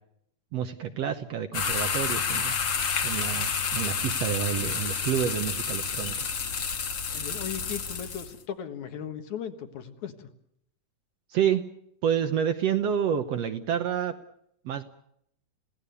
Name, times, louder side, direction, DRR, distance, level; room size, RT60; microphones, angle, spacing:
voice 1, 0.5-2.5 3.0-6.3 11.3-11.6 12.0-14.1 14.6-14.8, right 9 dB, 65° right, 7 dB, 1.8 m, -28 dB
sound 1, 1.5-8.3, left 6 dB, 45° left, 1.7 m, -29 dB
voice 2, 7.1-10.3, left 8 dB, 65° left, 7 dB, 2.9 m, -37 dB
29.5 x 17.0 x 6.9 m, 0.72 s
omnidirectional pair, 3.7 m